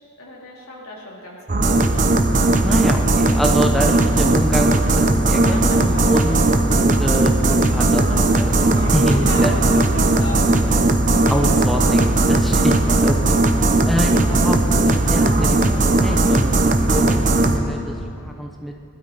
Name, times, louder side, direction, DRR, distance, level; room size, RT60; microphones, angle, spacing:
voice 1, 0.0-1.8 5.5-6.2 8.6-10.4 11.2-11.9, left 1 dB, 80° left, -4 dB, 3.3 m, -34 dB
sound 1, 1.5-17.6, right 2 dB, 35° right, 0.7 m, -17 dB
voice 2, 2.6-6.4 6.6-9.5 11.3-13.4 13.8-15.7 16.0-18.7, equal, ahead, 1 dB, 0.7 m, -26 dB
20.0 x 12.5 x 4.1 m, 2.6 s
head